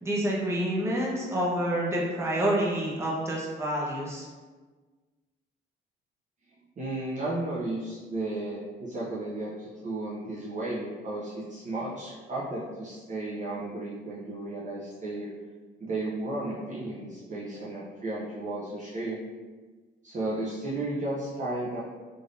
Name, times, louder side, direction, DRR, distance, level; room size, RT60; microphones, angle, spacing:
voice 1, 0.0-4.2, right 1 dB, 15° right, -5 dB, 0.9 m, -28 dB
voice 2, 6.8-15.3 15.8-19.2 20.0-21.8, right 2 dB, 40° right, -6 dB, 0.6 m, -34 dB
3.3 x 2.6 x 2.5 m, 1.4 s
cardioid pair, 90°, 20 cm